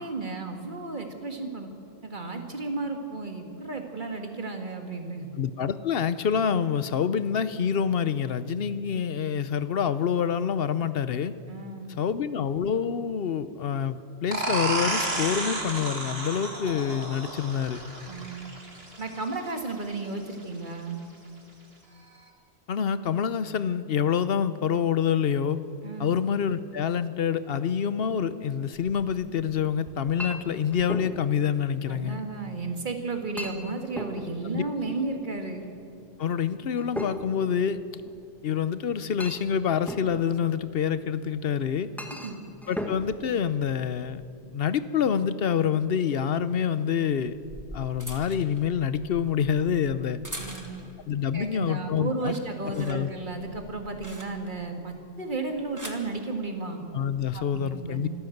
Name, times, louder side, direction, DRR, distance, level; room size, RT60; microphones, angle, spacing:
voice 1, 0.0-1.7 2.0-5.3 11.5-12.0 18.1-18.5 19.0-21.0 25.8-26.1 31.9-35.7 42.2-42.4 50.4-50.9 51.3-56.8 57.3-58.1, right 3 dB, 45° right, 4 dB, 2.1 m, -33 dB
voice 2, 5.4-11.3 12.0-17.8 22.7-25.6 26.0-32.2 34.5-34.6 36.2-37.8 38.4-41.9 42.7-47.4 47.7-50.2 51.1-52.3 52.7-53.1 56.9-58.1, left 7 dB, 60° left, 14 dB, 0.9 m, -27 dB
sound 1, 14.3-19.7, right 2 dB, 60° right, 2.7 m, -32 dB
Chink clink, 28.7-44.3, equal, ahead, 1.5 m, -41 dB
sound 2, 47.3-51.0 51.5-51.8 52.1-54.7 55.4-56.1 57.0-57.3, right 1 dB, 15° right, 1.9 m, -44 dB
25.5 x 13.0 x 7.9 m, 2.6 s
omnidirectional pair, 1.2 m